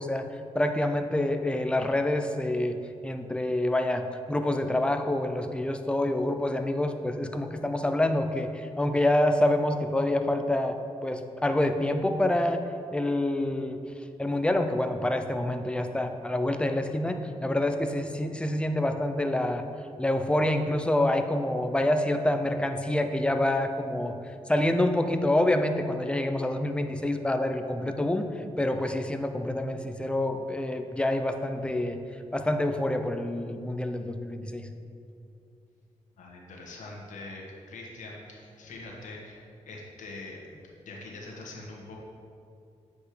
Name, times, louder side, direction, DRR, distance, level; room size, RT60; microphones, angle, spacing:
voice 1, 0.0-2.8 3.0-10.8 11.0-12.7 12.9-13.8 14.2-19.6 20.0-24.2 24.5-32.0 32.3-34.7, left 1 dB, 10° left, 6 dB, 0.6 m, -27 dB
voice 2, 36.2-40.4 40.8-42.0, left 2 dB, 85° left, -2 dB, 1.5 m, -43 dB
8.6 x 5.2 x 5.0 m, 2.5 s
cardioid pair, 60°, 13 cm